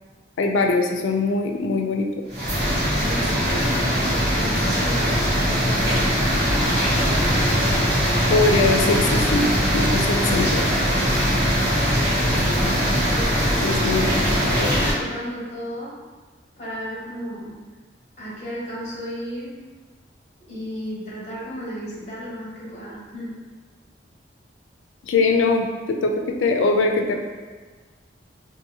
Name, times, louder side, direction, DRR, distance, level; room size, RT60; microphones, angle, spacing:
voice 1, 0.4-2.1 8.3-10.6 13.6-14.1 14.4-14.6 25.0-27.1, left 3 dB, 90° left, 3 dB, 0.4 m, -22 dB
sound 1, 2.3-14.9, equal, 60° right, 1.3 m, -21 dB
voice 2, 3.0-6.1 12.8-14.0 14.4-15.9 16.6-17.6 18.2-19.6 20.4-23.4, equal, 35° left, -7 dB, 1.0 m, -34 dB
2.7 x 2.5 x 2.7 m, 1.4 s
head